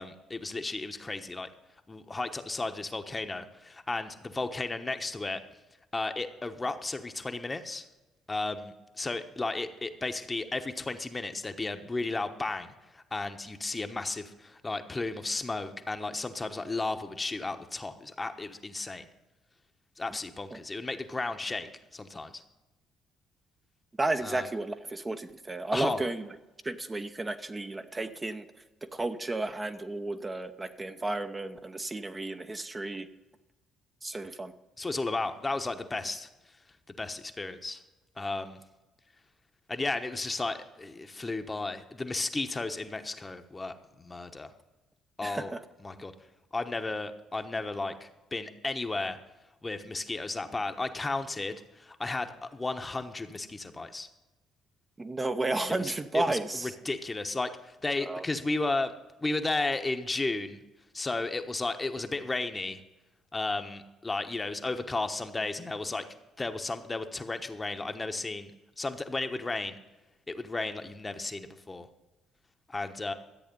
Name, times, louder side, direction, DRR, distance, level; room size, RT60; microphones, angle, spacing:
voice 1, 0.0-1.5 1.9-5.4 5.9-7.8 8.3-19.0 20.0-22.4 24.2-24.5 25.7-26.0 34.8-36.3 37.0-37.8 38.2-38.6 39.7-44.5 45.2-45.5 45.8-46.1 46.5-49.2 49.6-54.1 55.8-58.9 59.2-60.6 60.9-62.8 63.3-66.1 66.4-68.5 68.8-69.8 70.3-71.9 72.7-73.1, left 3 dB, 25° left, 7 dB, 1.1 m, -34 dB
voice 2, 24.0-26.2 26.6-28.5 28.8-33.1 34.0-34.5 45.2-45.6 55.0-56.7 58.1-58.2, right 2 dB, 25° right, 7 dB, 0.9 m, -33 dB
13.5 x 8.4 x 5.4 m, 1.1 s
hypercardioid pair, 50°, 0 cm